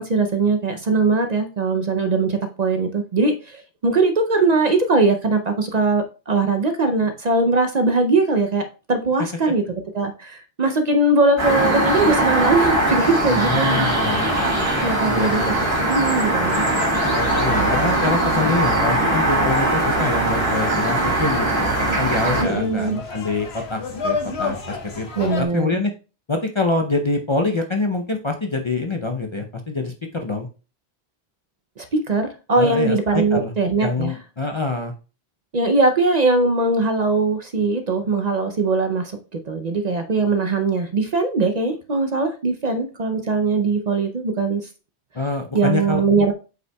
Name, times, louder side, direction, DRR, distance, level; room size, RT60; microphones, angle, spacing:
voice 1, 0.0-9.6 9.9-13.9 14.1-14.5 14.8-15.5 15.8-16.6 22.4-23.0 25.2-25.7 31.8-34.1 35.5-44.6 45.5-46.3, right 3 dB, 45° right, 7 dB, 0.6 m, -20 dB
sound 1, 11.4-22.4, right 1 dB, 25° right, 1.7 m, -20 dB
voice 2, 13.3-14.3 15.0-15.5 17.1-25.9 26.3-30.5 32.6-33.5 33.8-34.9 45.1-46.0, left 3 dB, 35° left, 4 dB, 0.5 m, -25 dB
sound 2, 14.2-25.5, left 4 dB, 75° left, 1.4 m, -33 dB
7.8 x 5.4 x 2.2 m, 0.34 s
omnidirectional pair, 1.1 m